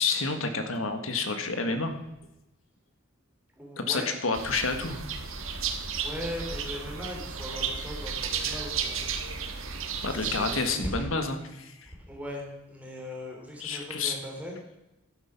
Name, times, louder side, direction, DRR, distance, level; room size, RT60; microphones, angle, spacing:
voice 1, 0.0-1.9 3.8-5.0 10.0-11.9 13.6-14.1, left 4 dB, 75° left, 7 dB, 1.6 m, -29 dB
voice 2, 3.6-4.0 5.9-9.3 10.1-11.1 11.9-14.5, left 1 dB, 5° right, -1 dB, 3.3 m, -39 dB
sound 1, 4.3-10.7, right 6 dB, 75° right, 1.5 m, -33 dB
11.5 x 9.2 x 5.8 m, 0.96 s
head